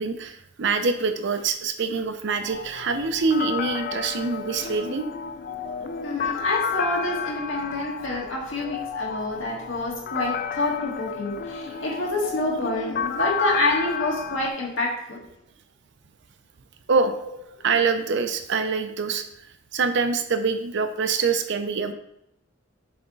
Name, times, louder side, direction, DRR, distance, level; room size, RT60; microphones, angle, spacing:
voice 1, 0.0-5.0 11.7-11.8 16.9-17.1 17.6-19.2 19.7-21.9, right 4 dB, 65° right, 9 dB, 0.6 m, -25 dB
sound 1, 2.5-14.5, left 6 dB, 50° left, 0.4 m, -31 dB
voice 2, 6.0-15.2, left 2 dB, 85° left, -3 dB, 2.0 m, -27 dB
7.0 x 3.5 x 3.9 m, 0.80 s
head